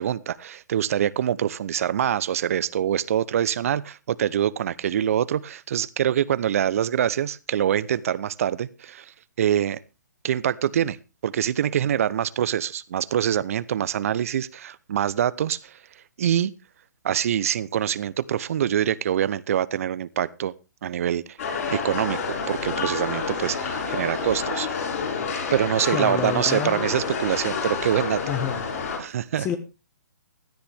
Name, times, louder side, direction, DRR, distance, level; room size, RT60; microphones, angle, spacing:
voice 1, 0.0-9.8 10.2-11.0 11.2-15.8 16.2-16.5 17.0-20.5 20.8-21.4 21.7-24.7 25.5-28.2 29.0-29.5, right 10 dB, 50° right, 19 dB, 0.7 m, -25 dB
sound 1, 21.4-29.0, left 5 dB, 55° left, 6.5 m, -29 dB
voice 2, 25.9-26.8 28.3-28.6 29.1-29.6, left 9 dB, 20° left, 9 dB, 1.3 m, -29 dB
16.5 x 11.5 x 3.5 m, 0.29 s
figure-of-eight pair, 135°, 10 cm